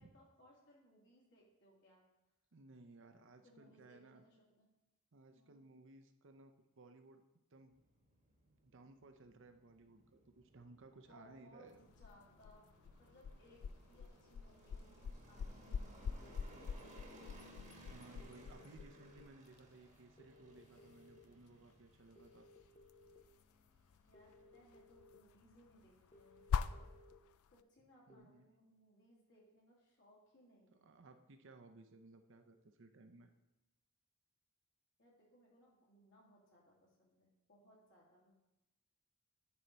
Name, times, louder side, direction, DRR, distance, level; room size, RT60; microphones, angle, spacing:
voice 1, 0.0-2.0 3.4-4.7 5.3-5.7 11.1-12.6 13.0-16.9 24.0-26.9 27.5-30.8 35.0-38.4, equal, 65° left, -4 dB, 2.7 m, -66 dB
voice 2, 2.5-4.2 5.1-7.7 8.5-11.8 17.9-22.5 28.1-28.5 30.8-33.3, right 3 dB, 60° right, 7 dB, 0.7 m, -60 dB
sound 1, 7.7-27.1, right 1 dB, 35° right, 1.2 m, -63 dB
sound 2, 11.7-27.6, left 6 dB, 80° left, 0.3 m, -45 dB
sound 3, 16.2-17.2 18.2-19.2 20.2-21.2 22.2-23.2 24.1-25.1 26.1-27.1 28.1-28.2, left 2 dB, 25° left, 0.7 m, -63 dB
10.0 x 4.6 x 4.0 m, 1.0 s
head